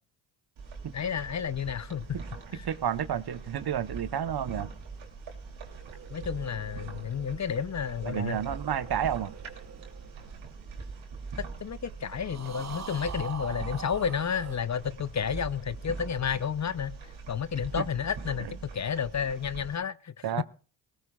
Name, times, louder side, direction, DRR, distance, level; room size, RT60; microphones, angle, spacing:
sound 1, 0.6-19.7, right 4 dB, 70° right, 3.0 m, -43 dB
voice 1, 0.9-2.1 2.5-2.6 6.1-8.4 11.4-17.0 17.3-20.4, left 7 dB, 35° left, 0.6 m, -31 dB
voice 2, 2.6-4.7 8.1-9.3 17.8-17.9 18.4-18.5 20.2-20.4, right 9 dB, 50° right, 1.0 m, -31 dB
sound 2, 5.6-11.2 12.2-14.6, right 6 dB, 35° right, 1.0 m, -44 dB
19.5 x 17.5 x 2.4 m
supercardioid pair, 50°, 48 cm